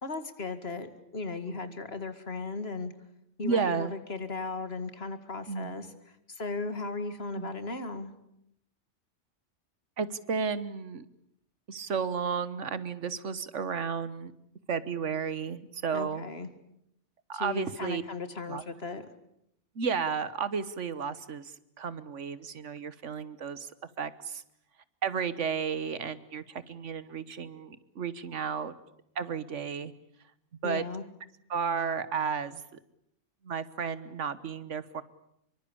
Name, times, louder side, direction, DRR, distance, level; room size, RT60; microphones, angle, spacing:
voice 1, 0.0-2.9 3.4-5.9 6.3-8.1 15.9-16.5 17.3-19.1 30.6-31.0, left 3 dB, 60° left, 10 dB, 2.3 m, -36 dB
voice 2, 3.4-3.9 5.5-5.8 7.4-7.5 10.0-11.1 11.7-14.3 14.7-16.2 17.3-18.0 18.5-18.6 19.7-23.7 24.0-24.4 25.0-28.8 29.1-29.9 30.6-30.8 31.5-32.6 33.4-35.0, right 6 dB, 80° right, 15 dB, 1.5 m, -33 dB
25.0 x 23.5 x 8.6 m, 0.77 s
omnidirectional pair, 1.2 m